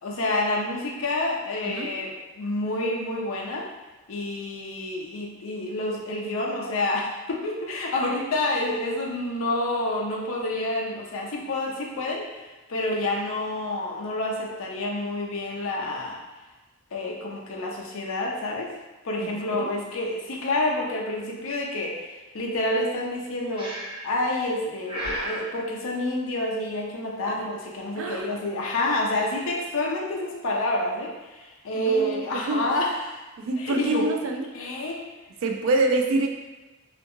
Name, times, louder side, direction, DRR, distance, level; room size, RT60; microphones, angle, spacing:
voice 1, 0.0-3.7 4.1-16.2 16.9-18.7 19.0-23.7 24.0-33.2 33.6-34.1 34.5-35.0, left 1 dB, 65° left, -2 dB, 0.5 m, -28 dB
Breathing, 23.6-24.2 24.9-25.5, right 1 dB, 25° right, 0.6 m, -33 dB
voice 2, 27.9-28.4 31.8-32.2 32.5-32.6 33.4-34.5 35.4-36.3, right 2 dB, 70° right, 4 dB, 0.3 m, -26 dB
2.7 x 2.5 x 2.5 m, 1.2 s
head